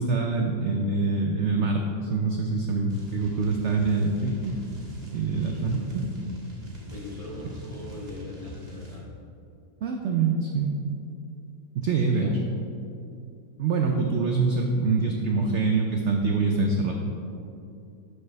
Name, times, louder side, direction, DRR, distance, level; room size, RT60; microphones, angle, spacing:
voice 1, 0.0-4.6 5.1-6.1 9.8-10.7 11.8-12.3 13.6-16.9, right 4 dB, 70° right, 2 dB, 0.6 m, -25 dB
sound 1, 2.9-9.0, equal, 40° right, 1.6 m, -42 dB
voice 2, 5.3-5.9 6.9-9.1 11.8-12.4, left 2 dB, 30° left, -4 dB, 0.8 m, -40 dB
11.5 x 4.7 x 3.3 m, 2.6 s
omnidirectional pair, 1.8 m